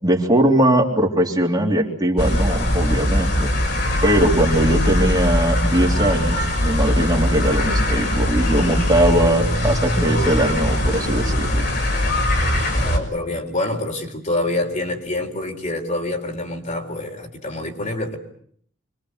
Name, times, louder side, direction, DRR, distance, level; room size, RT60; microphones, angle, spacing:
voice 1, 0.0-3.5 4.0-11.7, right 1 dB, 20° right, 0 dB, 3.3 m, -20 dB
sound 1, 2.2-13.0, left 1 dB, 60° left, 6.0 m, -21 dB
voice 2, 12.8-18.2, left 2 dB, 40° left, 2 dB, 4.5 m, -26 dB
26.5 x 24.0 x 8.2 m, 0.64 s
head